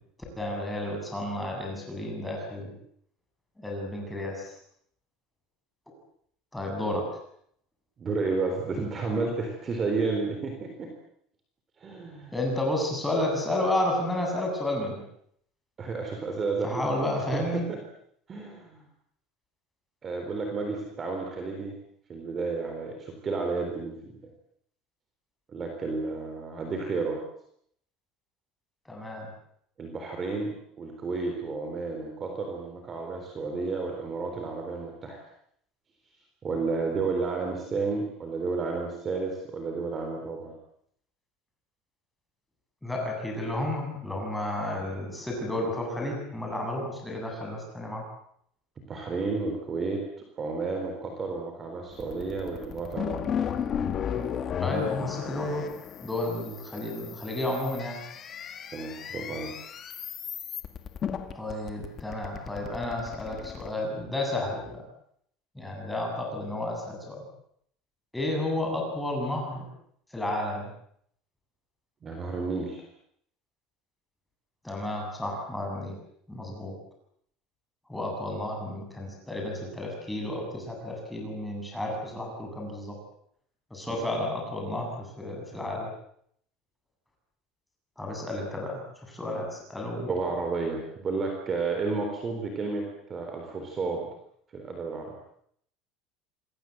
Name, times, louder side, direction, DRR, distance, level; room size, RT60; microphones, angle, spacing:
voice 1, 0.4-2.7 3.6-4.5 6.5-7.1 12.3-15.0 16.6-17.7 28.9-29.3 42.8-48.1 54.6-55.7 56.0-58.0 61.3-64.8 65.5-67.2 68.1-69.7 70.1-70.7 74.6-76.0 76.3-76.7 77.9-83.0 83.7-85.9 88.0-90.1, left 1 dB, 5° left, 0 dB, 7.7 m, -31 dB
voice 2, 8.0-10.9 11.8-12.3 15.8-16.9 17.3-17.8 18.3-18.8 20.0-21.8 22.1-24.1 25.5-27.2 29.8-35.2 36.4-40.5 48.9-50.0 50.4-53.5 58.7-59.5 72.0-72.8 83.9-84.0 90.1-94.1 94.5-95.1, right 4 dB, 20° right, 3 dB, 3.9 m, -31 dB
sound 1, 51.9-63.7, left 8 dB, 30° left, 1.9 m, -35 dB
27.0 x 22.0 x 7.9 m, 0.69 s
cardioid pair, 165°, 0 cm